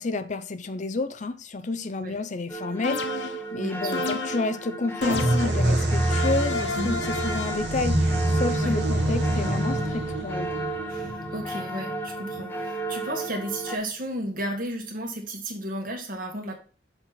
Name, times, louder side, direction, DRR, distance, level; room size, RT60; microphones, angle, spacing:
voice 1, 0.0-8.0 8.3-10.7, left 3 dB, 40° left, 0.6 m, -30 dB
sound 1, 2.5-13.8, right 2 dB, 10° left, 1.0 m, -34 dB
sound 2, 2.8-3.5 3.9-4.6 5.0-5.7 6.1-7.7, left 4 dB, 75° left, 0.9 m, -32 dB
voice 2, 3.6-3.9 6.7-7.0 8.6-8.8 10.9-16.6, right 1 dB, 50° right, 2.0 m, -33 dB
sound 3, 5.0-12.6, right 1 dB, 70° right, 1.6 m, -26 dB
6.9 x 4.3 x 5.9 m
head